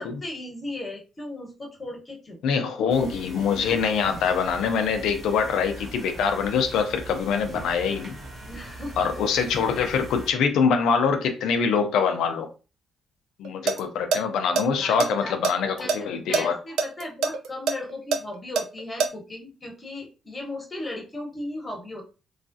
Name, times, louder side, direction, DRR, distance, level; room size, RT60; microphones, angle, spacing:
voice 1, 0.0-2.4 8.4-9.1 14.8-15.4 15.8-22.0, left 2 dB, 30° left, 1.1 m, -36 dB
voice 2, 2.4-8.2 9.0-12.5 13.4-16.6, left 6 dB, 80° left, 0.5 m, -24 dB
sound 1, 2.9-10.3, right 2 dB, 50° right, 1.0 m, -41 dB
sound 2, 13.4-13.8 14.1-14.2 14.5-16.0 16.3-16.4 16.8-19.1, right 5 dB, 80° right, 0.4 m, -24 dB
3.1 x 2.4 x 2.6 m
cardioid pair, 90°, 0 cm